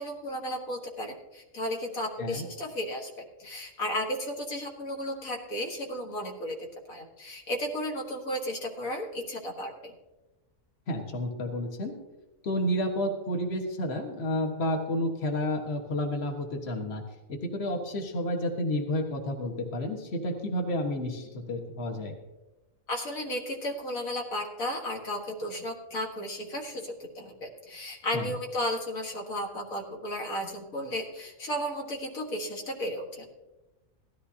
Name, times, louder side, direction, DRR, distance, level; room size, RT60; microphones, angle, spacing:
voice 1, 0.0-3.1 3.4-6.6 6.9-9.9 22.9-33.3, equal, 90° left, 1 dB, 2.1 m, -34 dB
voice 2, 10.9-11.9 12.4-17.0 17.3-22.1 28.1-28.3, left 1 dB, 50° left, 2 dB, 1.7 m, -30 dB
17.5 x 13.5 x 2.8 m, 1.1 s
omnidirectional pair, 1.4 m